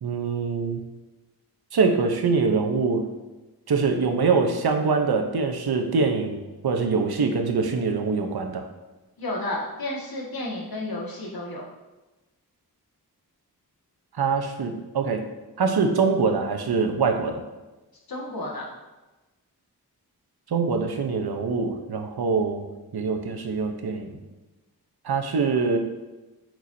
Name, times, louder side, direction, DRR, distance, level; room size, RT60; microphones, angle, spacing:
voice 1, 0.0-0.8 1.7-3.1 3.7-8.7 14.2-15.2 15.6-17.4 20.5-22.6 22.9-24.2 25.0-25.8, right 4 dB, 70° right, 4 dB, 0.9 m, -24 dB
voice 2, 9.2-11.7 18.1-18.7, left 1 dB, 65° left, -3 dB, 1.8 m, -31 dB
8.3 x 4.7 x 2.7 m, 1.1 s
cardioid pair, 50°, 39 cm